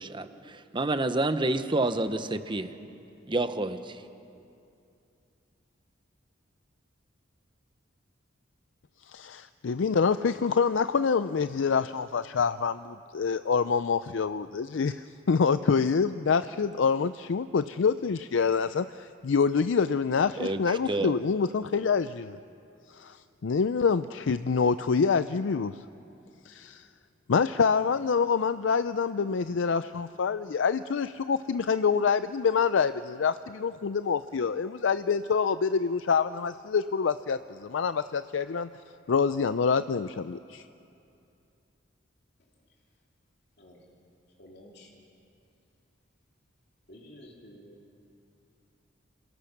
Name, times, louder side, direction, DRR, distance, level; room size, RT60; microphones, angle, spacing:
voice 1, 0.0-2.7 3.3-4.0 20.4-21.1, right 2 dB, 25° right, 10 dB, 0.9 m, -29 dB
voice 2, 9.1-22.4 22.9-23.2 23.4-25.8 26.5-26.9 27.3-38.7 39.1-40.7, left 5 dB, 75° left, 12 dB, 0.5 m, -26 dB
voice 3, 44.4-44.9 46.9-47.8, left 1 dB, 60° left, -2 dB, 3.0 m, -50 dB
27.5 x 20.0 x 5.9 m, 2.6 s
head